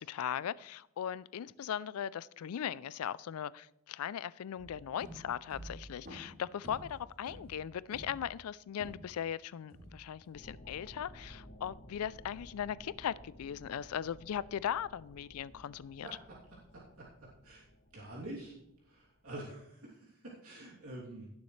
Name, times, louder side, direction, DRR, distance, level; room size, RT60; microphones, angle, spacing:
voice 1, 0.0-16.1, left 9 dB, 80° left, 20 dB, 0.4 m, -38 dB
sound 1, 4.6-9.3 9.7-10.3, equal, 45° right, 3.3 m, -51 dB
sound 2, 10.3-19.5, equal, 55° left, 2.5 m, -56 dB
voice 2, 16.7-17.1 17.4-17.6 17.9-18.5 18.8-21.3, right 1 dB, 80° right, -5 dB, 2.8 m, -46 dB
17.5 x 7.0 x 3.2 m, 0.79 s
head